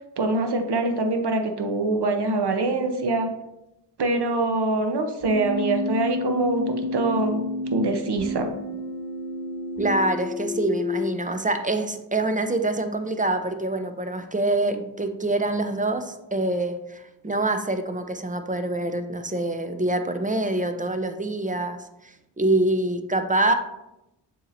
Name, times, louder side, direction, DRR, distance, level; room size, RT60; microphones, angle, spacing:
voice 1, 0.2-3.3 4.0-7.4 7.7-8.5, right 2 dB, 65° right, 6 dB, 0.7 m, -24 dB
Keyboard (musical), 5.2-11.2, left 2 dB, 35° right, 1.4 m, -30 dB
voice 2, 9.8-21.8 22.0-23.5, right 2 dB, 20° right, 8 dB, 0.4 m, -25 dB
7.0 x 2.9 x 2.5 m, 0.89 s
wide cardioid pair, 40°, 43 cm